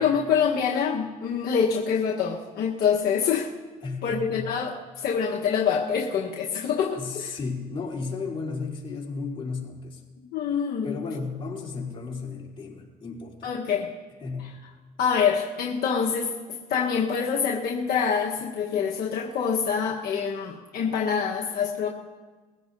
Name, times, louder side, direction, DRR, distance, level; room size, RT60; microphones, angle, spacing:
voice 1, 0.0-3.5 4.0-7.3 10.3-10.9 13.4-13.9 15.0-16.3 16.7-21.9, left 6 dB, 65° left, -2 dB, 1.3 m, -25 dB
voice 2, 3.8-4.6 7.0-10.0 10.8-13.6 14.2-14.6, left 4 dB, 30° left, -3 dB, 3.5 m, -34 dB
21.5 x 16.0 x 2.7 m, 1.3 s
cardioid pair, 110°, 17 cm